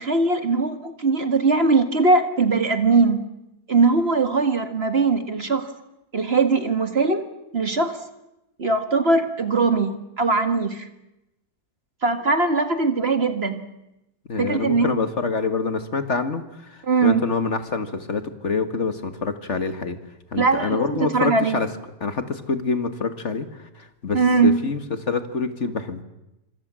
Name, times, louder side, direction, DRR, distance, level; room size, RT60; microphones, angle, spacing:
voice 1, 0.0-3.2 3.7-5.7 6.1-7.2 7.5-8.0 8.6-10.9 12.0-13.6 14.4-14.9 16.9-17.2 20.4-21.6 24.1-24.6, right 4 dB, 40° right, 8 dB, 2.0 m, -20 dB
voice 2, 14.3-20.0 20.3-21.7 22.0-26.0, left 4 dB, 50° left, 9 dB, 2.0 m, -26 dB
27.0 x 25.5 x 7.6 m, 0.91 s
omnidirectional pair, 1.7 m